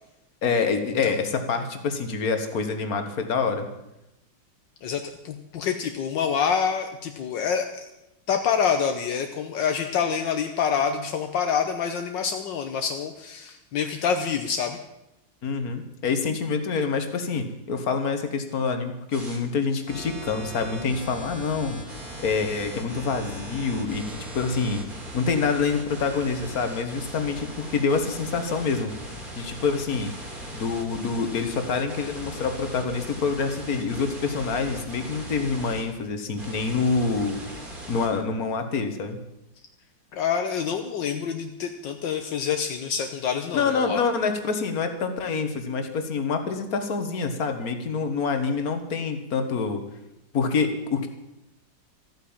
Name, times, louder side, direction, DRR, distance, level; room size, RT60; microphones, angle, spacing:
voice 1, 0.4-3.7 15.4-21.8 22.2-24.9 25.1-28.9 29.4-30.1 30.5-37.4 37.9-39.2 43.5-49.8 50.3-51.1, left 4 dB, 55° left, 7 dB, 1.9 m, -26 dB
voice 2, 4.8-7.9 8.3-14.8 40.1-44.0, left 7 dB, 75° left, 6 dB, 1.6 m, -27 dB
sound 1, 19.1-19.4 19.9-35.8 36.4-38.1, equal, 25° right, 3.2 m, -39 dB
14.0 x 9.5 x 8.8 m, 0.89 s
omnidirectional pair, 2.0 m